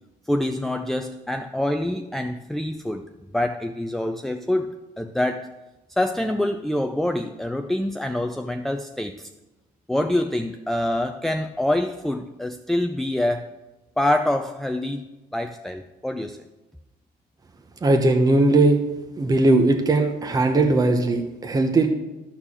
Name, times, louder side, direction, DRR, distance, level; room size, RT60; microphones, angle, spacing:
voice 1, 0.3-3.1 3.3-5.5 6.0-9.3 9.9-13.5 14.0-15.1 15.3-16.4, left 1 dB, ahead, 6 dB, 0.4 m, -25 dB
voice 2, 17.8-18.8 19.2-21.9, right 2 dB, 20° right, 5 dB, 0.9 m, -19 dB
12.5 x 4.5 x 7.2 m, 1.1 s
cardioid pair, 110°, 17 cm